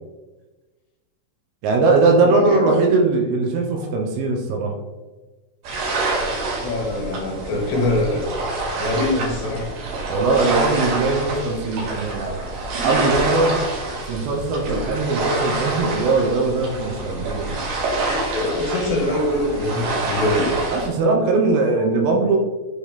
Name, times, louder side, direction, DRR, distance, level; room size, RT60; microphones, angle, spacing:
voice 1, 1.6-4.7 10.1-13.6 14.1-17.5 20.7-22.4, right 3 dB, 85° right, 1 dB, 3.2 m, -20 dB
voice 2, 2.3-2.8 6.6-8.3 8.8-9.7 18.3-20.6, left 1 dB, 70° left, -2 dB, 2.9 m, -23 dB
sound 1, 5.6-20.9, right 2 dB, 60° right, 3.1 m, -26 dB
8.9 x 3.3 x 3.5 m, 1.2 s
omnidirectional pair, 5.8 m